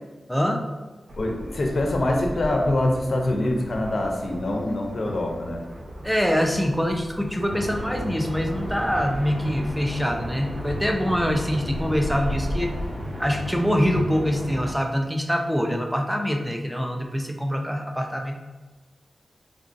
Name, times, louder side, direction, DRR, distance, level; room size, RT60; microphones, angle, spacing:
voice 1, 0.3-0.6 6.0-12.7 13.2-18.4, equal, ahead, 2 dB, 0.4 m, -24 dB
sound 1, 1.1-12.9, equal, 55° right, 0.5 m, -37 dB
voice 2, 1.2-5.6, left 1 dB, 55° left, 1 dB, 0.5 m, -24 dB
sound 2, 7.4-14.7, equal, 80° right, 1.1 m, -34 dB
3.7 x 2.5 x 2.5 m, 1.2 s
wide cardioid pair, 95°, 0 cm